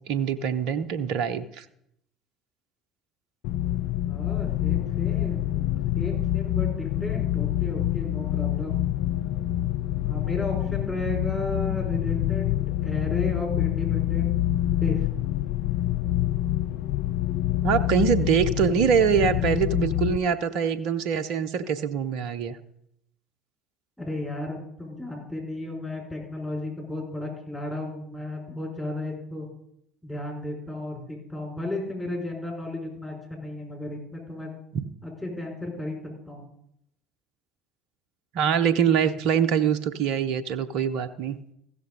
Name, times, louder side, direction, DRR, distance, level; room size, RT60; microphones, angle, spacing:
voice 1, 0.1-1.7 17.6-22.6 34.7-34.8 38.3-41.4, right 7 dB, 60° right, 10 dB, 0.7 m, -24 dB
sound 1, 3.4-20.2, left 13 dB, 60° left, 0.3 m, -26 dB
voice 2, 4.0-8.9 10.0-14.4 14.7-15.0 24.0-29.5 30.0-34.5 35.0-36.0 36.3-36.4, left 1 dB, 5° left, -1 dB, 4.8 m, -34 dB
14.5 x 6.7 x 5.2 m, 0.75 s
figure-of-eight pair, 60°, 0 cm